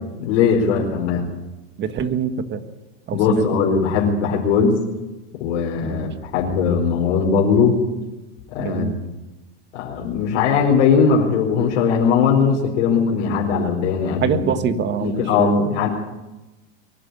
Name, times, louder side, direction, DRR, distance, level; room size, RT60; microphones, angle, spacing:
voice 1, 0.2-1.2 3.1-4.8 5.3-7.8 8.5-9.0 9.7-14.4 15.0-15.9, left 6 dB, 70° left, -3 dB, 4.9 m, -19 dB
voice 2, 1.8-2.6 3.1-3.7 5.8-6.1 8.6-9.0 14.2-15.8, right 7 dB, 30° right, 9 dB, 1.7 m, -25 dB
23.5 x 11.5 x 10.0 m, 1.1 s
supercardioid pair, 125°, 35 cm